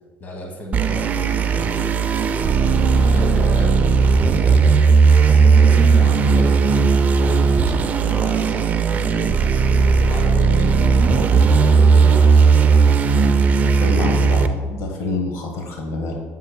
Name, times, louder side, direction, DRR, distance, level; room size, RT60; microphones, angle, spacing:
voice 1, 0.2-2.3 2.9-3.8 4.3-4.7 5.3-6.9 7.2-9.7 10.0-12.6, left 1 dB, 35° left, 2 dB, 1.3 m, -33 dB
sound 1, 0.7-14.5, right 5 dB, 35° right, 0.4 m, -16 dB
voice 2, 13.7-16.1, left 3 dB, 70° left, 2 dB, 1.2 m, -27 dB
8.0 x 7.4 x 2.2 m, 1.5 s
cardioid pair, 120°, 5 cm